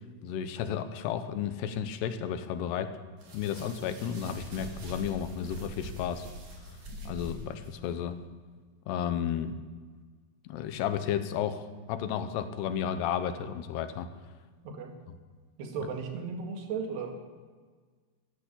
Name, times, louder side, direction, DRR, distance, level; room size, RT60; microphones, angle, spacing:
voice 1, 0.2-2.9 3.3-6.3 7.1-8.2 8.9-9.6 10.4-14.1, left 9 dB, 85° left, 10 dB, 3.0 m, -32 dB
sound 1, 3.2-8.0, equal, 50° right, 4.0 m, -43 dB
voice 2, 14.6-15.0 15.6-17.2, right 5 dB, 80° right, 3 dB, 3.9 m, -36 dB
14.5 x 11.0 x 8.4 m, 1.5 s
omnidirectional pair, 4.7 m